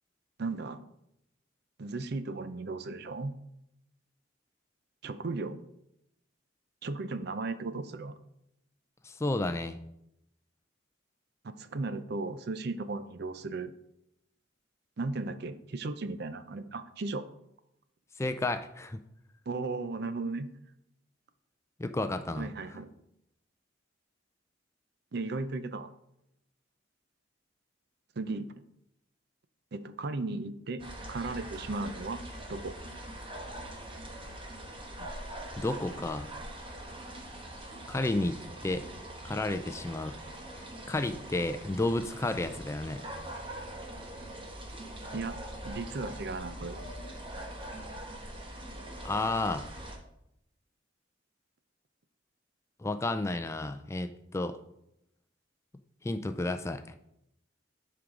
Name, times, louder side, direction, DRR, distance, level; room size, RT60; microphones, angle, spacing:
voice 1, 0.4-0.9 1.8-3.3 5.0-5.7 6.8-8.1 11.4-13.7 15.0-17.2 19.5-20.5 22.4-22.9 25.1-25.9 28.2-28.5 29.7-32.2 32.5-32.8 45.1-45.4 45.6-46.9, right 3 dB, 55° right, 12 dB, 0.5 m, -36 dB
voice 2, 9.0-9.8 18.2-19.0 21.8-22.5 35.6-36.3 37.9-38.4 38.6-38.8 39.2-40.1 40.9-43.1 49.0-49.6 52.8-54.6 56.0-56.9, left 2 dB, 15° left, 10 dB, 0.4 m, -31 dB
sound 1, 30.8-50.0, right 1 dB, 25° right, 1.1 m, -43 dB
10.5 x 4.7 x 3.7 m, 0.80 s
head